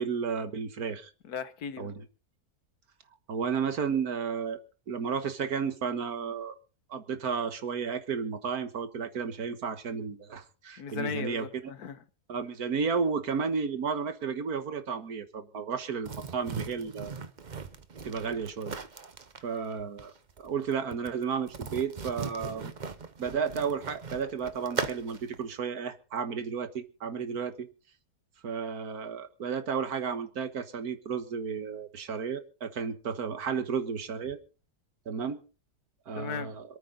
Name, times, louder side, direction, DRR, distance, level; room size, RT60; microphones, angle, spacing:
voice 1, 0.0-1.1 1.8-2.1 3.3-4.6 4.9-6.6 6.9-11.5 12.3-17.2 18.0-18.8 19.4-22.7 23.2-27.7 28.4-34.4 35.1-35.4 36.1-36.6, right 6 dB, 70° right, 1.8 m, -33 dB
voice 2, 1.2-1.9 10.8-12.0 36.1-36.5, left 7 dB, 75° left, 1.6 m, -37 dB
sound 1, 16.0-25.4, right 5 dB, 35° right, 0.9 m, -39 dB
26.5 x 9.2 x 3.9 m
omnidirectional pair, 1.7 m